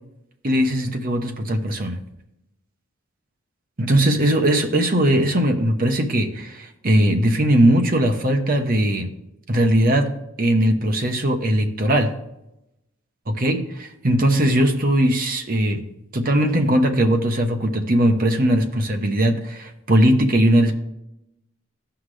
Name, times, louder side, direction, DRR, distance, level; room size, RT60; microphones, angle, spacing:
voice 1, 0.4-2.0 3.8-9.1 9.5-12.1 13.3-15.8 16.1-20.8, right 1 dB, 40° right, 5 dB, 1.0 m, -19 dB
15.0 x 5.8 x 3.3 m, 0.88 s
head